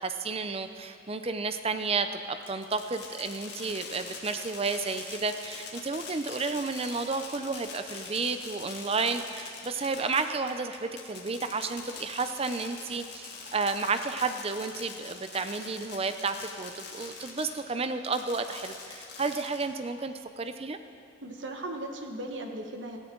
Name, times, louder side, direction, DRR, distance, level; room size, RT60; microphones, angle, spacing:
voice 1, 0.0-20.8, right 4 dB, 30° right, 9 dB, 0.5 m, -32 dB
Fireworks, 2.4-17.6 18.0-19.9, left 5 dB, 60° left, 2.2 m, -43 dB
voice 2, 21.2-23.0, right 1 dB, 70° right, 3 dB, 1.5 m, -37 dB
19.0 x 14.5 x 3.9 m, 2.4 s
head